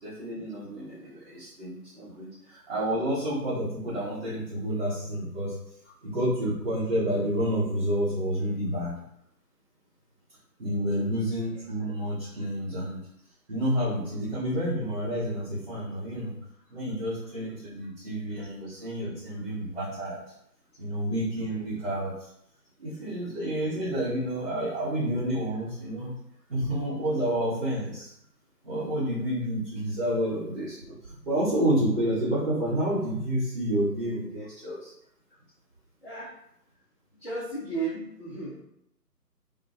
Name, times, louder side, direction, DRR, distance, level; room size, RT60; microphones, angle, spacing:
voice 1, 0.0-5.5 6.0-8.9 10.6-13.0 13.5-16.3 16.7-20.2 20.8-22.3 22.8-26.1 26.5-28.1 28.6-34.9, right 1 dB, 40° right, -12 dB, 0.9 m, -29 dB
voice 2, 37.2-38.6, right 3 dB, 40° left, -8 dB, 0.5 m, -34 dB
2.3 x 2.2 x 2.5 m, 0.76 s
figure-of-eight pair, 150°, 49 cm